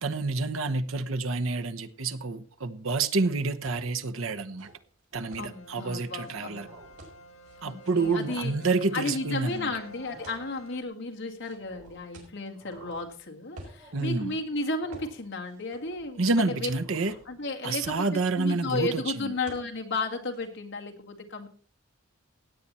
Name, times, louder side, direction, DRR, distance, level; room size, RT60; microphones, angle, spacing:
voice 1, 0.0-4.7 5.1-6.7 7.6-9.7 13.9-14.4 16.2-17.1 17.6-19.3, right 3 dB, 70° right, 0.9 m, -28 dB
sound 1, 3.5-4.1 4.5-4.7 5.1-5.3 6.0-6.1 6.4-7.1 7.8-8.4 9.8-10.5 11.5-12.1 12.5-13.2 13.6-14.2 14.8-15.3 15.6-16.3 16.7-17.3, right 1 dB, 50° right, 4.2 m, -53 dB
sound 2, 3.6-3.9 4.4-5.5 6.1-6.3 7.0-7.9 8.6-9.8 10.2-10.7 11.4-13.0 13.5-13.8 14.2-14.4 14.9-15.1 15.4-16.3 16.7-17.2 17.5-17.6 17.8-18.4 19.5-19.7 20.0-20.5, right 1 dB, 90° right, 5.4 m, -50 dB
sound 3, 5.2-10.8, right 2 dB, 80° left, 1.6 m, -50 dB
voice 2, 5.4-6.8 7.6-8.5 8.9-16.7 17.3-18.1 18.4-21.5, left 3 dB, 55° left, 2.0 m, -33 dB
16.5 x 8.9 x 4.3 m
head